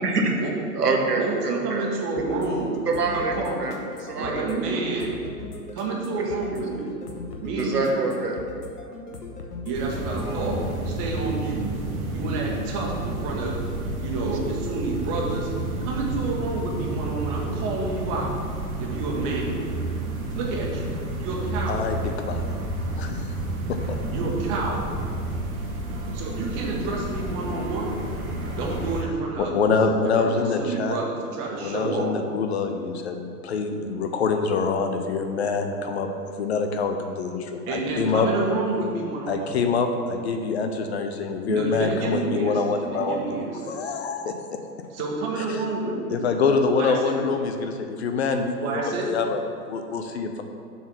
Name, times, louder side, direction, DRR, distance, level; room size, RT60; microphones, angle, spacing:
voice 1, 0.0-0.4 0.7-1.9 2.9-3.7 4.0-4.4 7.6-8.4, right 3 dB, 75° right, 2 dB, 1.1 m, -25 dB
voice 2, 1.2-2.8 3.1-3.6 4.1-5.2 5.7-6.9 7.4-7.9 9.6-10.6 10.8-11.6 12.1-13.5 14.0-15.5 15.8-18.3 18.8-19.6 20.3-20.9 21.2-21.9 24.1-24.8 26.1-28.0 28.5-29.7 30.2-32.1 37.7-39.5 41.5-43.9 44.9-46.2 46.7-47.2 48.6-49.1, right 3 dB, 30° right, -2 dB, 1.4 m, -29 dB
sound 1, 2.2-10.4, left 3 dB, 75° left, 1.1 m, -39 dB
sound 2, 9.7-29.0, right 1 dB, 60° right, 1.4 m, -30 dB
voice 3, 21.7-22.0 22.3-22.6 23.7-24.0 29.4-31.0 31.6-36.1 36.4-38.3 39.3-44.6 45.5-45.6 46.1-49.4 49.7-50.4, left 4 dB, 45° left, 5 dB, 0.6 m, -25 dB
6.9 x 4.1 x 6.1 m, 2.3 s
figure-of-eight pair, 105°, 47 cm